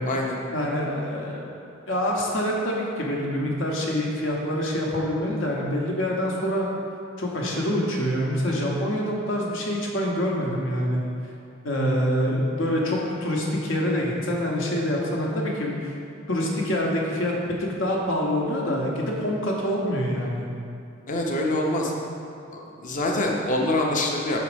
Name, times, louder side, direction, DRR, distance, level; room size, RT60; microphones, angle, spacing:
voice 1, 0.5-1.4 1.9-6.7 7.2-11.0 11.6-15.7 16.3-17.3 17.6-20.4, equal, 70° left, -2 dB, 1.1 m, -26 dB
voice 2, 21.1-21.9 22.5-24.4, left 1 dB, 40° left, 0 dB, 0.8 m, -25 dB
6.0 x 4.2 x 5.0 m, 2.5 s
head